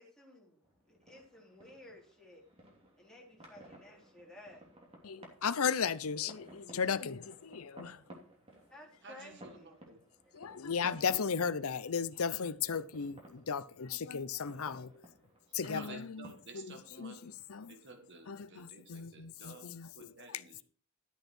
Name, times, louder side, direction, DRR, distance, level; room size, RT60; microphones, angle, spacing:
voice 1, 0.0-2.4 3.0-4.6 8.7-9.8 10.2-10.4, left 1 dB, 5° left, 3.5 m, -55 dB
sound 1, 0.6-19.9, right 1 dB, 25° right, 2.7 m, -58 dB
voice 2, 5.0-8.0 10.3-15.0 15.5-16.3 16.5-17.7 18.3-19.9 20.3-20.4, left 6 dB, 75° left, 0.7 m, -36 dB
voice 3, 9.0-10.0 15.5-17.4 17.7-20.6, right 3 dB, 55° right, 1.8 m, -53 dB
12.5 x 8.0 x 4.5 m
head